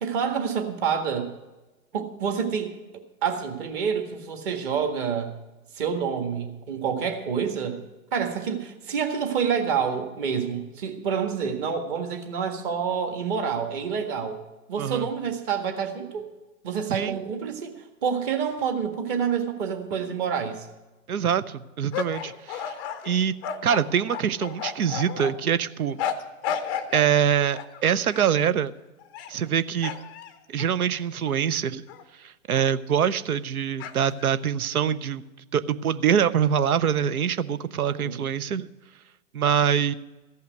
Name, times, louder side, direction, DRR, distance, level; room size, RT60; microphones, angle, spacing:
voice 1, 0.0-1.3 1.9-5.3 5.7-7.8 8.1-14.4 14.7-16.3 16.6-20.7 37.8-38.2, right 7 dB, 35° right, 5 dB, 1.7 m, -28 dB
voice 2, 21.1-22.7 23.0-23.3 23.6-26.0 26.9-28.7 29.3-29.9 30.5-31.8 32.2-35.2 35.5-38.7 39.3-39.9, right 8 dB, 85° right, 16 dB, 0.7 m, -24 dB
sound 1, 21.9-25.3 26.0-27.1 27.5-28.4 29.0-29.5 29.8-31.4 31.9-32.0 32.5-32.7 33.8-34.3, left 8 dB, 15° left, 0.4 m, -33 dB
14.5 x 5.6 x 9.1 m, 1.1 s
hypercardioid pair, 135°, 42 cm